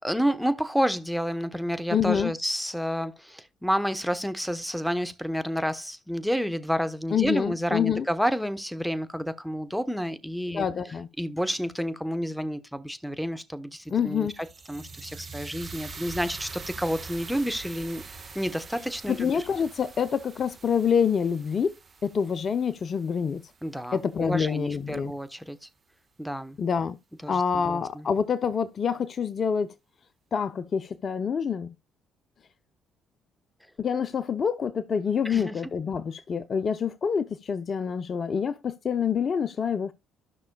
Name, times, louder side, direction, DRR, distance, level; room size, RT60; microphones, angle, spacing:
voice 1, 0.0-10.7 11.2-14.3 14.7-18.0 18.3-19.4 23.6-25.7 26.2-26.6 27.2-28.1 35.2-35.6, equal, ahead, 1.0 m, -30 dB
voice 2, 1.9-2.3 7.1-8.1 10.5-11.1 13.9-14.4 19.1-21.7 22.0-23.4 23.9-25.1 26.6-27.0 27.3-29.7 30.3-31.7 33.8-39.9, left 7 dB, 50° left, 0.6 m, -26 dB
sound 1, 13.9-24.0, right 4 dB, 40° right, 1.5 m, -44 dB
13.0 x 6.1 x 2.3 m
hypercardioid pair, 55°, 0 cm